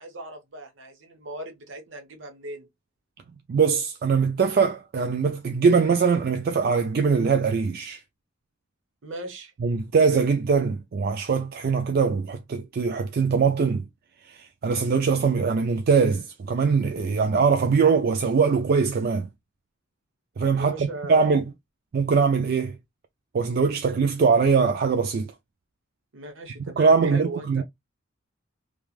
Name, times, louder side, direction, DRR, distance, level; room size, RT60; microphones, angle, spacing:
voice 1, 0.0-2.7 9.0-9.5 20.6-21.3 26.1-27.6, right 2 dB, 75° right, 0.9 m, -38 dB
voice 2, 3.5-8.0 9.6-13.9 14.3-19.3 20.4-21.4 21.9-22.8 23.3-25.3 26.8-27.6, right 5 dB, 50° right, 0.3 m, -22 dB
3.2 x 2.3 x 2.3 m
head